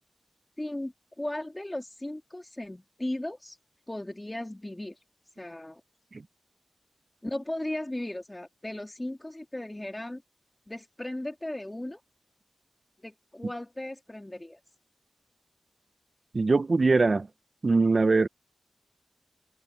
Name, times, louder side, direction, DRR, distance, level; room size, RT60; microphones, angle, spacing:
voice 1, 0.6-3.6 3.9-5.0 5.4-5.8 7.2-10.2 10.7-12.0 13.0-14.6, left 1 dB, 20° left, 3.1 m, -36 dB
voice 2, 16.3-17.3 17.6-18.3, right 3 dB, 50° right, 0.8 m, -22 dB
cardioid pair, 55°, 0 cm